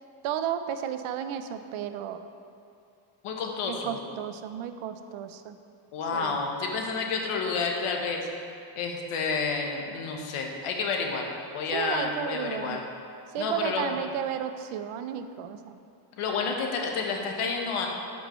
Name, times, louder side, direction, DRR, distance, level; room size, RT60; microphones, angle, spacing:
voice 1, 0.2-2.3 3.7-5.6 6.1-6.4 11.7-12.9 13.3-15.8, right 9 dB, 75° right, 9 dB, 0.6 m, -33 dB
voice 2, 3.2-4.0 5.9-8.2 8.8-11.2 11.5-12.8 13.4-13.9 16.2-17.9, left 4 dB, 80° left, 1 dB, 1.1 m, -30 dB
12.0 x 4.7 x 3.0 m, 2.5 s
cardioid pair, 155°, 50 cm